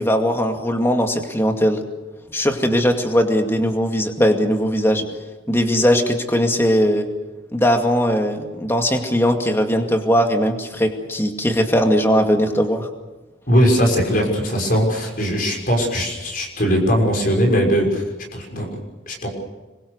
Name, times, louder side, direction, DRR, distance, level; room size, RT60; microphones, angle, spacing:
voice 1, 0.0-1.8 2.3-5.1 5.5-7.1 7.5-12.9, equal, 15° left, 4 dB, 2.3 m, -19 dB
voice 2, 13.5-18.0 18.3-18.7 19.1-19.3, equal, 45° left, 1 dB, 6.2 m, -19 dB
26.0 x 23.0 x 6.6 m, 1.2 s
head